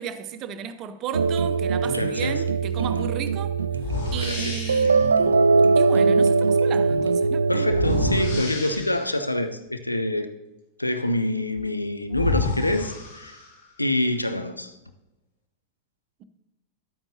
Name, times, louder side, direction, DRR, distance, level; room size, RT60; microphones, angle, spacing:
voice 1, 0.0-3.5 4.1-5.4 5.8-7.4, right 8 dB, 35° right, 0.6 m, -34 dB
sound 1, 1.1-8.4, right 4 dB, 75° right, 0.3 m, -21 dB
voice 2, 1.9-2.4 4.2-4.6 7.5-10.3 10.8-13.3 13.8-14.7, left 1 dB, 85° left, 0.5 m, -26 dB
sound 2, 2.8-3.0 3.8-5.0 7.7-9.3 11.6-11.7 12.1-13.7, left 3 dB, 55° left, 1.4 m, -30 dB
11.0 x 8.9 x 2.8 m
figure-of-eight pair, 90°, 0 cm